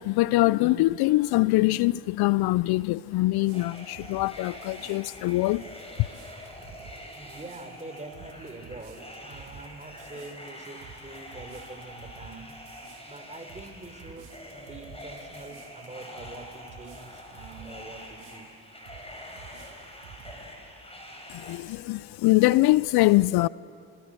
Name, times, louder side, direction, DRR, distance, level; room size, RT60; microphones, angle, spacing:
voice 1, 0.0-5.6 21.3-23.5, left 19 dB, 65° left, 0.5 m, -23 dB
sound 1, 3.4-17.7 18.2-19.1 19.4-20.4, right 7 dB, 80° right, 4.1 m, -51 dB
sound 2, 3.5-21.6, left 1 dB, 15° left, 7.1 m, -45 dB
voice 2, 7.1-12.5 13.1-18.5, right 2 dB, 15° right, 4.0 m, -44 dB
27.0 x 26.0 x 7.8 m
hypercardioid pair, 55°, 41 cm